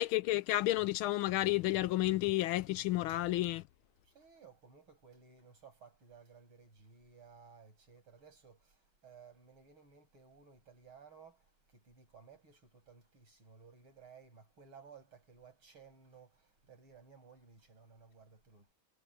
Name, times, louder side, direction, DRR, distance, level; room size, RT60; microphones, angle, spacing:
voice 1, 0.0-3.6, left 16 dB, 75° left, 1.4 m, -31 dB
voice 2, 4.1-8.6 9.0-11.4 11.8-16.3 16.7-18.7, right 6 dB, 70° right, 8.0 m, -58 dB
omnidirectional pair, 2.4 m